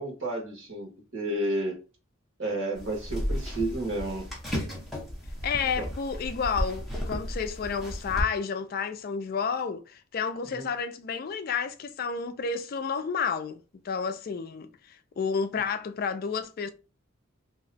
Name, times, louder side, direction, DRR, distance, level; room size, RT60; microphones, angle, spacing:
voice 1, 0.0-1.8 2.4-4.2 5.8-5.9 10.5-10.7, right 1 dB, 70° right, 1.4 m, -31 dB
sound 1, 2.8-8.2, equal, ahead, 0.8 m, -34 dB
voice 2, 5.4-13.6 13.8-16.7, left 6 dB, 45° left, 0.3 m, -31 dB
2.8 x 2.2 x 3.9 m
head